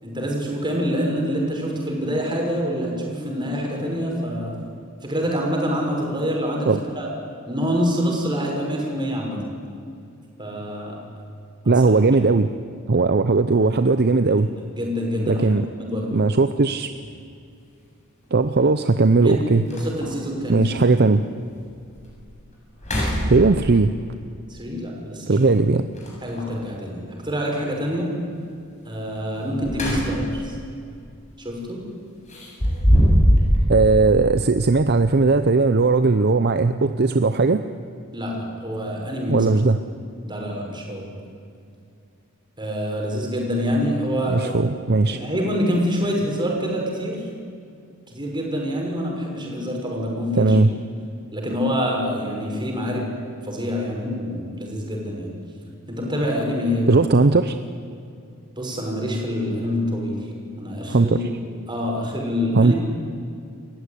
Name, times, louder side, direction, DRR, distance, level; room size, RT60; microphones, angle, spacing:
voice 1, 0.0-4.6 5.0-6.7 7.0-7.1 7.5-9.4 10.4-11.0 11.6-11.9 14.4-15.5 15.8-16.2 19.2-20.7 24.5-25.4 26.2-28.1 28.8-30.6 31.4-31.8 38.1-39.5 40.2-41.1 42.6-44.5 45.0-47.3 48.1-50.6 51.3-53.1 53.4-55.3 55.9-57.0 58.6-60.2 60.6-61.2 61.7-62.7, equal, 20° right, -1 dB, 6.1 m, -26 dB
voice 2, 11.7-12.5 12.9-14.5 15.3-15.7 16.1-16.9 18.3-19.6 20.5-21.2 23.3-23.9 25.3-25.9 33.7-37.6 39.3-39.8 44.3-45.2 50.4-50.7 56.9-57.5 60.9-61.2 62.5-62.7, right 3 dB, 50° right, 10 dB, 0.7 m, -18 dB
sound 1, 17.0-17.1 18.8-18.9 19.3-19.4 19.7-20.2 20.8-20.9 21.5-21.6 22.0-22.3 22.7-23.8 25.9-26.6 29.3-30.4 30.8-31.0 32.3-33.6, equal, 35° left, 7.5 m, -21 dB
29.0 x 15.0 x 9.9 m, 2.4 s
head